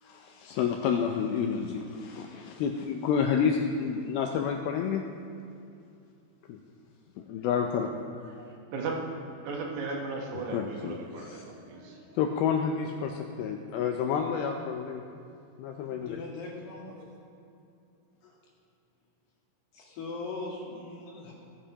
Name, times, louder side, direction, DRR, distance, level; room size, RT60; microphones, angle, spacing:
voice 1, 0.0-5.0 6.5-6.6 7.2-8.1 10.3-11.4 12.1-15.0 15.6-16.2, left 7 dB, 90° left, 3 dB, 2.1 m, -30 dB
voice 2, 8.4-12.1, right 3 dB, 85° right, -1 dB, 1.7 m, -36 dB
voice 3, 15.9-17.0 18.2-18.4 19.7-21.3, left 3 dB, 70° left, -4 dB, 3.9 m, -40 dB
18.5 x 10.0 x 2.9 m, 2.6 s
omnidirectional pair, 5.0 m